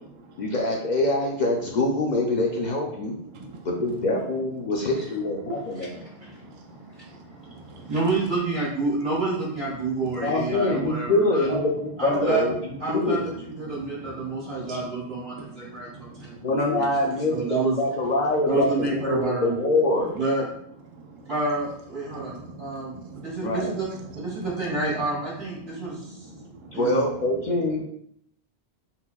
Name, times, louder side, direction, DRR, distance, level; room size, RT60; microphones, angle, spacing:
voice 1, 0.4-3.2 3.6-6.0 10.2-13.2 16.4-20.1 23.4-23.7 26.7-27.8, left 2 dB, 55° left, 0 dB, 0.6 m, -24 dB
voice 2, 3.3-3.6 6.5-7.9 11.5-11.6 12.3-12.4 13.8-14.8 15.3-16.4 22.1-23.4 24.1-24.2 26.1-26.8, right 3 dB, 45° right, 1 dB, 0.4 m, -41 dB
voice 3, 5.5-11.5 12.0-12.4 12.8-16.9 17.3-17.8 18.4-19.6 20.1-20.4 21.3-23.9 24.2-26.3 26.7-27.1, right 3 dB, 80° right, -8 dB, 1.9 m, -29 dB
5.7 x 2.1 x 2.3 m, 0.70 s
omnidirectional pair, 1.1 m